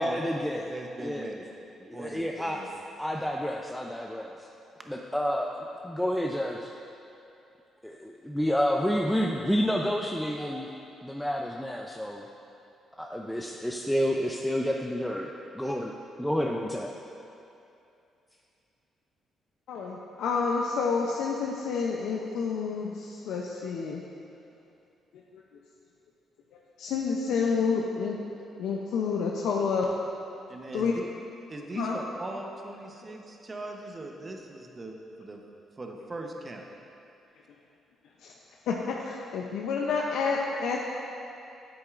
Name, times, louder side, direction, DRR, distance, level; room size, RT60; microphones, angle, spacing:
voice 1, 0.0-0.7 1.0-1.3 1.9-2.6 3.0-4.4 4.9-5.6 6.0-6.7 8.2-10.7 11.0-12.2 13.0-15.9 16.2-16.9, equal, 5° left, 0 dB, 0.4 m, -29 dB
voice 2, 0.7-1.4 1.9-2.8 4.9-5.0 30.5-31.0 31.5-35.4 35.8-36.7, right 2 dB, 30° right, 2 dB, 0.9 m, -40 dB
voice 3, 19.7-24.0 26.8-28.1 28.6-29.8 30.7-30.9 31.8-32.0 38.2-38.3 38.7-40.8, left 5 dB, 85° left, -1 dB, 0.5 m, -29 dB
9.6 x 8.0 x 2.5 m, 2.7 s
cardioid pair, 90°, 0 cm